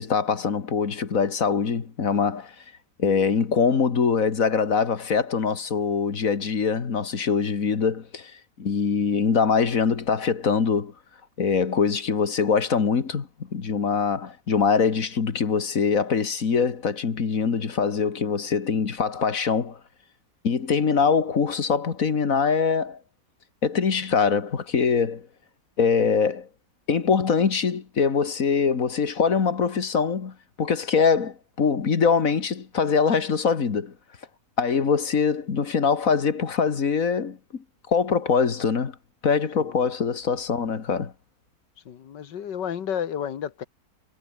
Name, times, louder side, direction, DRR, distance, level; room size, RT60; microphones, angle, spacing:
voice 1, 0.0-2.6 3.0-8.3 8.6-10.9 11.4-19.8 20.4-23.0 23.6-25.3 25.8-26.5 26.9-33.9 34.6-39.0 39.2-41.1, left 5 dB, 50° left, 2.1 m, -23 dB
voice 2, 41.9-43.7, left 8 dB, 90° left, 2.0 m, -31 dB
omnidirectional pair, 1.8 m